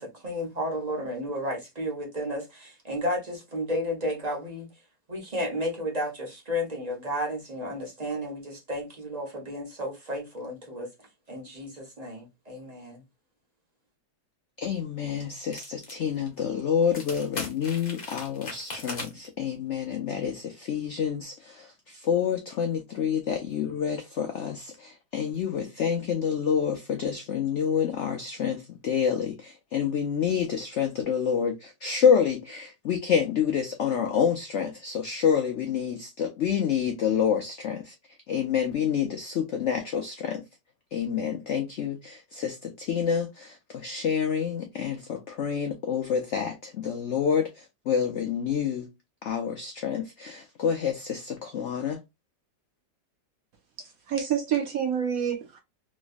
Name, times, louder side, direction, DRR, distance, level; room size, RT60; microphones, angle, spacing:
voice 1, 0.0-4.7 5.1-10.9 11.3-13.0, equal, 25° right, 1.0 m, -32 dB
voice 2, 14.6-40.5 40.9-48.9 49.2-52.0, left 7 dB, 85° left, 0.6 m, -28 dB
sound 1, 15.5-15.9 16.3-16.4 16.9-19.3, left 2 dB, 30° left, 0.9 m, -38 dB
voice 3, 53.8-55.6, right 8 dB, 65° right, 0.9 m, -28 dB
3.1 x 3.0 x 2.5 m
omnidirectional pair, 1.9 m